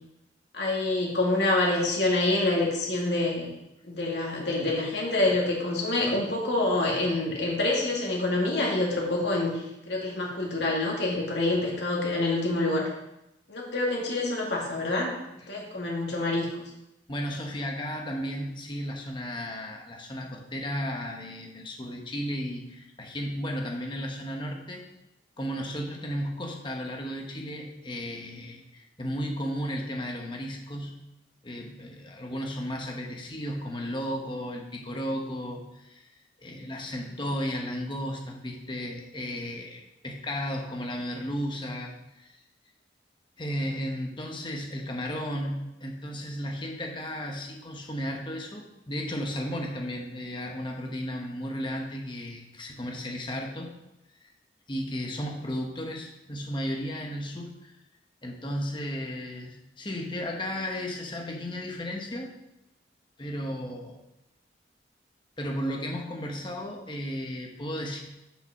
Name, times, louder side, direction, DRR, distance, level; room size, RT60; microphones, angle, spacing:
voice 1, 0.5-3.5 3.8-12.9 13.5-15.1 15.5-16.6, left 2 dB, 70° left, -2 dB, 2.2 m, -26 dB
voice 2, 17.1-24.8 25.4-31.0 31.4-36.1 36.4-42.4 43.4-53.7 54.7-57.7 58.2-62.3 63.2-64.0 65.4-68.0, equal, 25° left, 1 dB, 1.2 m, -34 dB
6.7 x 5.8 x 5.9 m, 0.88 s
head